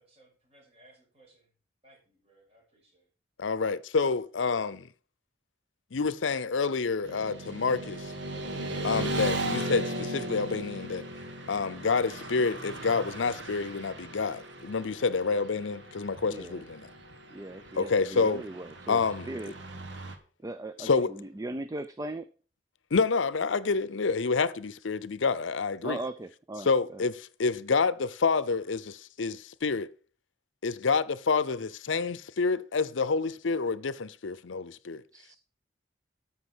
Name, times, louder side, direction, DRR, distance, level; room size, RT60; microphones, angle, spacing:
voice 1, 0.0-1.4 1.8-3.1, right 1 dB, 35° right, 5.9 m, -61 dB
voice 2, 3.4-4.9 5.9-8.1 8.8-11.1 11.5-16.9 17.7-18.4 18.9-19.3 20.8-21.1 22.9-26.0 26.6-29.9 30.6-35.0, left 4 dB, 90° left, 0.7 m, -28 dB
Motorcycle / Traffic noise roadway noise, 7.0-20.2, right 1 dB, 70° right, 1.8 m, -37 dB
voice 3, 16.3-16.6 17.3-19.5 20.4-22.3 25.8-27.1 35.1-35.4, right 1 dB, 20° right, 0.5 m, -39 dB
13.5 x 5.8 x 6.2 m
head